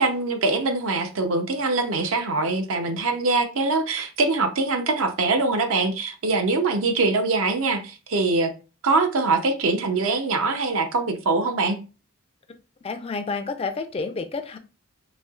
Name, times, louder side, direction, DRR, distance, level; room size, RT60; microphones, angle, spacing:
voice 1, 0.0-8.5 8.8-11.8, right 3 dB, 70° right, 0.6 m, -23 dB
voice 2, 12.8-14.6, left 4 dB, 30° left, 0.3 m, -30 dB
4.2 x 2.7 x 2.3 m
head